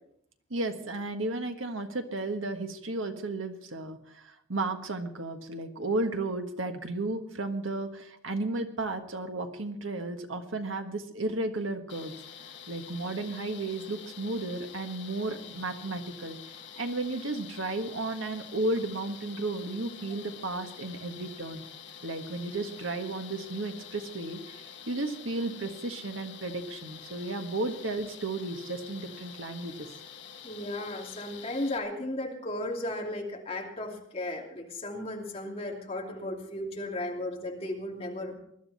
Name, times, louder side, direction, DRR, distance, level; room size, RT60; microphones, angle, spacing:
voice 1, 0.5-12.1 12.7-16.4 16.8-21.6 22.0-29.9, right 2 dB, 80° right, 6 dB, 1.5 m, -33 dB
sound 1, 11.9-31.8, left 8 dB, 65° left, 1.5 m, -47 dB
voice 2, 30.4-38.3, left 1 dB, 30° left, -1 dB, 2.9 m, -35 dB
20.5 x 12.0 x 4.2 m, 0.71 s
head